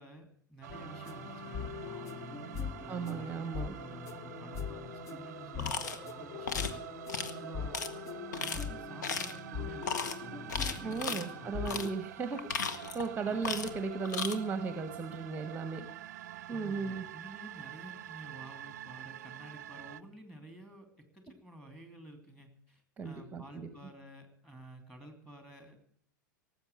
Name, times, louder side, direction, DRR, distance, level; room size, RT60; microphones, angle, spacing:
voice 1, 0.0-2.4 2.8-6.8 7.3-7.8 8.3-11.9 13.3-13.6 16.5-25.8, equal, 5° left, 6 dB, 2.8 m, -51 dB
sound 1, 0.6-20.0, right 13 dB, 55° right, 0.5 m, -47 dB
sound 2, 0.7-11.9, left 7 dB, 30° left, 0.8 m, -42 dB
voice 2, 2.9-3.7 10.8-15.9 16.5-17.1 23.0-23.7, right 4 dB, 15° right, 10 dB, 1.1 m, -36 dB
sound 3, 5.6-6.0 6.5-6.8 7.1-7.3 7.7-7.9 8.3-8.6 9.0-9.4 9.8-10.1 10.5-11.2 11.7-11.9 12.3-13.1 13.4-13.8 14.0-14.4, left 5 dB, 65° left, 1.2 m, -35 dB
18.5 x 7.7 x 8.3 m, 0.63 s
figure-of-eight pair, 90°, 11 cm